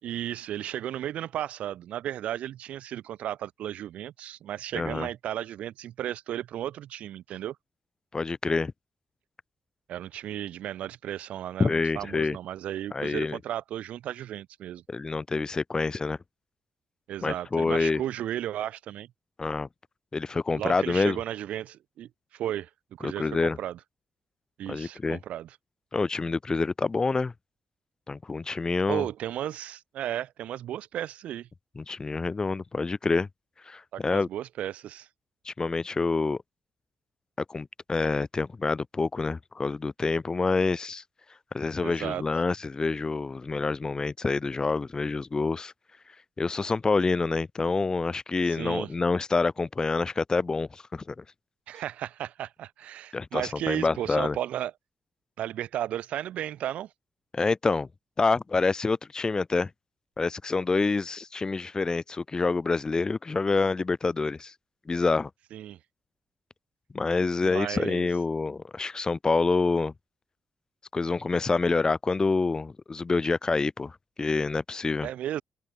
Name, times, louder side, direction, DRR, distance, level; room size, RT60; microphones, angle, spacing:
voice 1, 0.0-7.6 9.9-14.8 17.1-19.1 20.5-23.8 24.6-25.6 28.9-31.5 33.9-35.1 41.8-42.2 48.5-48.9 51.7-54.7 55.4-56.9 65.5-65.8 67.4-68.1 75.0-75.4, right 11 dB, 85° right, 5.1 m, -34 dB
voice 2, 4.7-5.1 8.1-8.7 11.6-12.4 12.9-13.4 14.9-16.2 17.2-18.0 19.4-19.7 20.1-21.2 23.0-23.6 24.7-25.2 25.9-27.3 28.1-29.0 31.8-33.3 33.7-34.3 35.4-36.4 37.5-41.0 41.5-45.7 46.4-51.2 53.1-54.4 57.3-57.9 58.2-59.7 60.2-64.5 64.9-65.3 66.9-69.9 70.9-75.1, left 4 dB, 35° left, 2.5 m, -27 dB
open air
cardioid pair, 65°, 2 cm